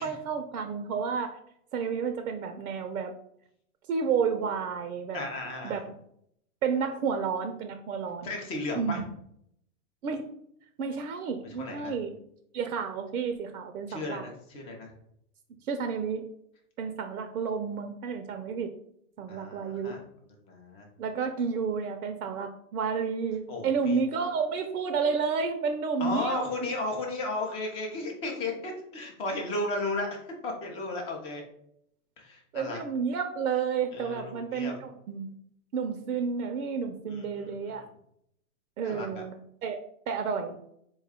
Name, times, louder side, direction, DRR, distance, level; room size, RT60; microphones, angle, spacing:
voice 1, 0.0-1.4 1.7-3.1 3.9-5.2 5.6-5.8 6.6-8.3 8.7-9.0 10.0-10.3 10.8-12.1 12.5-14.2 15.7-16.2 16.8-18.7 19.2-19.9 21.0-26.7 32.5-35.3 35.7-37.8 38.8-39.8 40.1-40.6, right 6 dB, 80° right, 6 dB, 0.6 m, -31 dB
voice 2, 5.1-5.8 8.2-9.0 11.4-11.9 13.9-14.9 19.3-20.0 20.4-20.9 23.5-24.0 26.0-31.4 32.2-32.8 33.9-34.7 37.1-37.8 38.8-39.2, left 2 dB, 15° left, 1 dB, 0.4 m, -34 dB
4.2 x 2.2 x 3.5 m, 0.72 s
hypercardioid pair, 125°, 44 cm